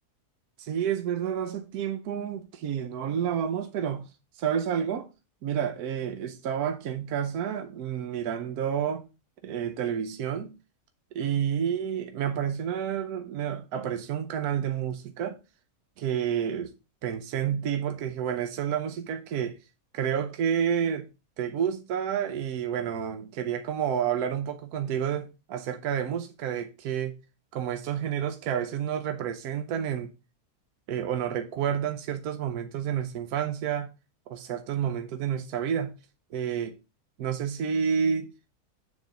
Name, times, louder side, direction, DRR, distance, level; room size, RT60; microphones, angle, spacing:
voice 1, 0.6-4.1 4.4-5.1 5.4-9.0 9.4-10.6 11.1-15.4 16.0-16.7 17.0-19.6 19.9-21.1 21.4-27.2 27.5-30.1 30.9-33.9 34.3-35.9 36.3-36.8 37.2-38.3, right 8 dB, 75° right, 1.2 m, -29 dB
7.2 x 3.9 x 5.1 m
omnidirectional pair, 1.7 m